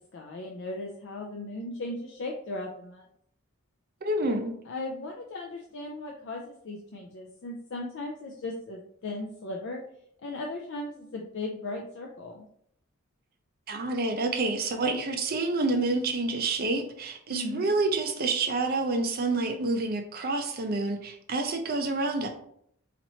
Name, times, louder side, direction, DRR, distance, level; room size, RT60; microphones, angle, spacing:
voice 1, 0.1-3.1 4.7-9.8 10.2-12.5 17.3-17.7, left 2 dB, 60° left, 0 dB, 0.4 m, -37 dB
voice 2, 4.0-4.5 13.7-22.3, right 2 dB, 45° right, 5 dB, 0.6 m, -28 dB
4.2 x 3.0 x 2.7 m, 0.68 s
head